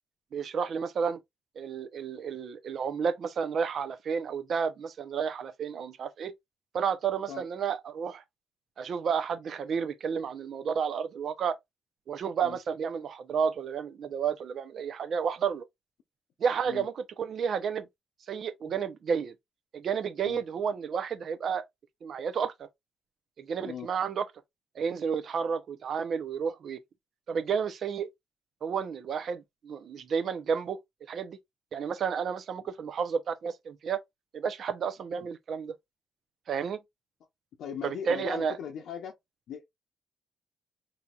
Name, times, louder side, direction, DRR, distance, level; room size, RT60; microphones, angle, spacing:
voice 1, 0.3-1.2 1.6-6.3 6.7-8.2 8.8-11.6 12.1-15.7 16.4-17.9 18.3-19.3 19.7-21.6 22.0-22.7 23.4-24.2 24.8-26.8 27.3-28.1 28.6-30.8 31.1-31.4 31.7-34.0 34.3-35.7 36.5-36.8 37.8-38.6, right 6 dB, 60° right, 0.6 m, -31 dB
voice 2, 37.6-39.2 39.5-39.6, left 7 dB, 75° left, 0.7 m, -39 dB
4.2 x 2.8 x 2.4 m
cardioid pair, 90°, 0 cm